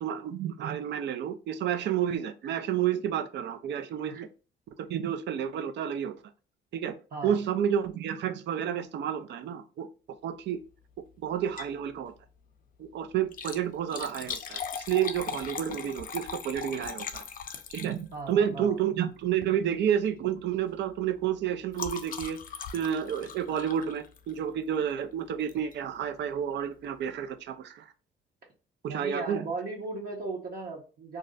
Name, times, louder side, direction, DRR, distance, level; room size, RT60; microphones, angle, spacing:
voice 1, 0.0-4.3 4.8-6.1 6.7-7.0 7.2-9.9 10.2-10.6 11.2-12.1 12.8-17.2 17.7-22.4 22.7-27.8 28.8-29.4, right 9 dB, 65° right, 10 dB, 0.4 m, -30 dB
Liquid, 11.4-11.8 12.2-12.3 13.2-18.3 19.3-19.6 19.9-20.2 20.5-24.5 25.5-25.7 26.3-26.4 26.6-26.7, left 6 dB, 45° left, 0.4 m, -39 dB
voice 2, 18.1-18.8 28.8-31.2, right 3 dB, 50° right, -1 dB, 0.8 m, -37 dB
2.5 x 2.1 x 3.8 m, 0.34 s
cardioid pair, 90°, 20 cm